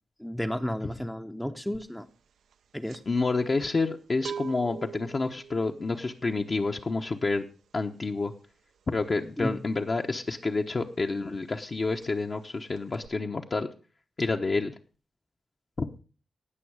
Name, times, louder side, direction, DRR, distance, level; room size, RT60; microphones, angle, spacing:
voice 1, 0.2-2.1 2.7-3.0 9.4-9.5, equal, 5° left, 5 dB, 0.7 m, -32 dB
sound 1, 1.7-2.0 2.3-10.9 11.1-11.4 11.6-12.5 12.7-13.1, right 7 dB, 85° right, 0.6 m, -45 dB
voice 2, 3.1-7.4 7.7-8.3 8.9-13.7 14.2-14.7 15.8-15.9, left 3 dB, 40° left, 2 dB, 1.0 m, -29 dB
18.5 x 6.2 x 4.8 m, 0.35 s
cardioid pair, 85°, 0 cm